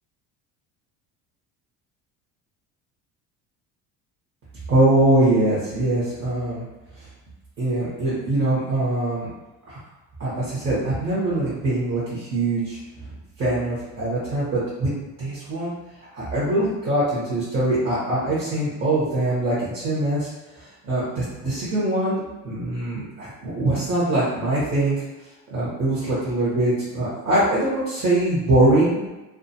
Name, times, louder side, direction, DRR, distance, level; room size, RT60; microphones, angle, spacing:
voice 1, 4.7-6.6 7.6-9.3 9.7-9.8 10.2-12.8 13.4-14.9 15.2-15.7 16.0-20.3 20.6-22.2 22.4-25.0 25.5-29.0, right 1 dB, 35° right, -9 dB, 0.9 m, -22 dB
2.3 x 2.3 x 2.7 m, 1.1 s
cardioid pair, 110°, 36 cm